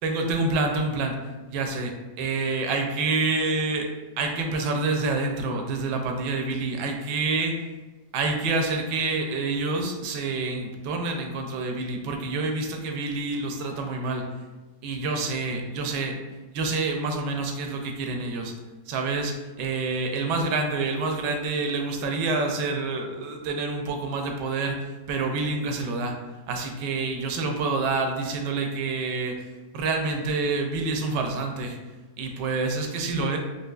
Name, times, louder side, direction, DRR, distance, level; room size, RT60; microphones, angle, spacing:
voice 1, 0.0-1.2 1.5-3.9 4.2-7.6 8.1-14.3 14.8-16.2 16.5-18.5 18.9-26.2 26.5-29.4 29.7-31.8 32.2-33.4, right 3 dB, 90° right, 3 dB, 1.2 m, -27 dB
4.6 x 2.5 x 2.3 m, 1.2 s
omnidirectional pair, 1.8 m